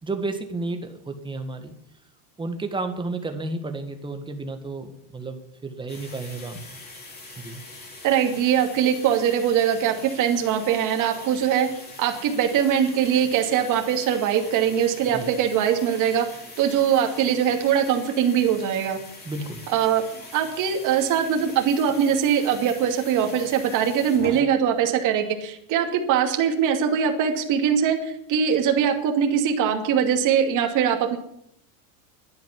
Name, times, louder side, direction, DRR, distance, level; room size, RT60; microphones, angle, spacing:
voice 1, 0.0-1.7 2.4-6.8 7.4-7.6 15.1-15.3 19.3-19.6, right 3 dB, 10° right, 6 dB, 1.7 m, -32 dB
sound 1, 5.9-24.4, left 2 dB, 20° left, 4.3 m, -43 dB
voice 2, 8.0-11.7 12.0-16.3 16.6-19.0 19.7-20.0 20.3-31.2, right 8 dB, 40° right, 4 dB, 2.6 m, -22 dB
11.5 x 10.5 x 9.8 m, 0.72 s
supercardioid pair, 150°, 46 cm